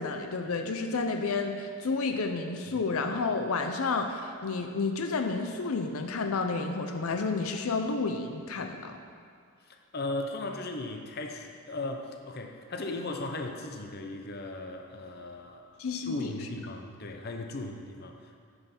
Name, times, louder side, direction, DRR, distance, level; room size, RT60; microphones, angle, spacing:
voice 1, 0.0-9.0 15.8-16.3, left 4 dB, 85° left, 5 dB, 0.6 m, -31 dB
voice 2, 9.7-18.4, left 2 dB, 45° left, 4 dB, 0.7 m, -37 dB
9.8 x 5.6 x 5.8 m, 2.2 s
head